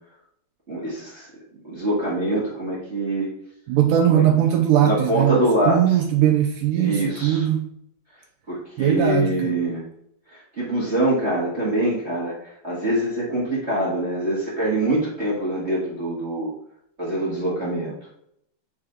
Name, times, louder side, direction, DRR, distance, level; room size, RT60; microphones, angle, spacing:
voice 1, 0.7-1.3 1.6-3.3 4.1-4.2 4.8-6.0 6.7-7.4 8.5-9.8 10.3-16.5 17.0-18.0, right 1 dB, 40° right, -7 dB, 0.9 m, -24 dB
voice 2, 3.7-7.7 8.8-9.5, right 10 dB, 80° right, 4 dB, 2.0 m, -20 dB
4.7 x 4.5 x 5.0 m, 0.74 s
omnidirectional pair, 3.9 m